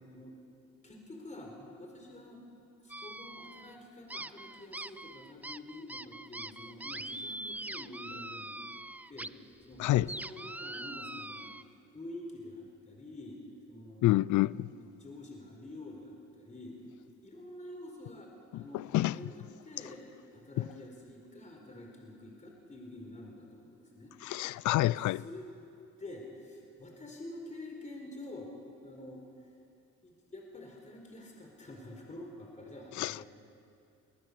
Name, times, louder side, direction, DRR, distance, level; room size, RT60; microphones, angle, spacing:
voice 1, 0.0-0.3 0.8-2.4 2.8-8.7 9.1-9.3 9.7-11.5 11.9-13.4 13.7-16.8 17.2-20.0 20.3-24.1 25.2-25.5 26.0-28.5 28.8-29.2 30.0-33.3, left 1 dB, 25° left, 4.2 m, -48 dB
sound 1, 2.9-3.8 4.1-9.3 9.6-11.6, right 1 dB, 5° right, 0.4 m, -43 dB
voice 2, 14.0-14.7 18.5-19.2 24.2-25.2 33.0-33.2, left 16 dB, 75° left, 0.5 m, -28 dB
22.5 x 18.5 x 6.8 m
cardioid pair, 90°, 30 cm